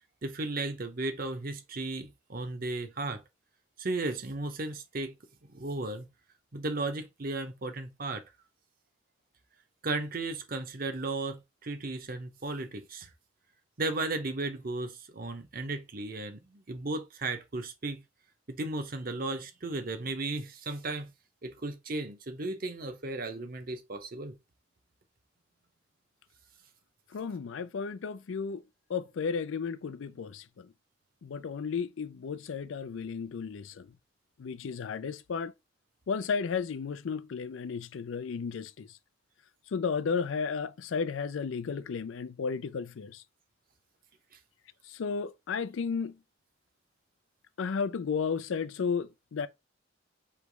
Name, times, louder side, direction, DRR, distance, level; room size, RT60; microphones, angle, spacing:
voice 1, 0.2-3.2 3.8-5.1 5.5-6.1 6.5-8.2 9.8-13.1 13.8-18.0 18.5-21.1 21.4-24.3, right 2 dB, 45° right, 0.8 m, -35 dB
voice 2, 27.1-28.6 28.9-30.7 31.2-33.9 34.4-35.5 36.1-38.9 39.7-43.2 44.9-46.2 47.6-49.5, left 5 dB, 75° left, 0.4 m, -33 dB
3.3 x 3.0 x 4.6 m
head